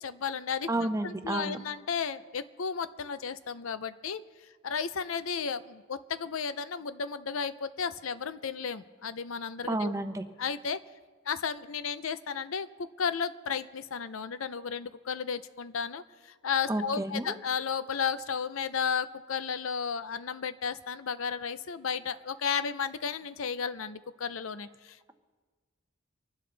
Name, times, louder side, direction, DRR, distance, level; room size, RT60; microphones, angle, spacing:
voice 1, 0.0-0.7 1.0-4.2 4.6-9.9 10.4-10.8 11.3-12.7 13.0-25.1, left 6 dB, 75° left, 13 dB, 0.6 m, -33 dB
voice 2, 0.7-1.6 9.7-10.2 16.7-17.3, right 1 dB, 15° right, 7 dB, 0.7 m, -31 dB
25.5 x 11.5 x 3.3 m, 1.4 s
head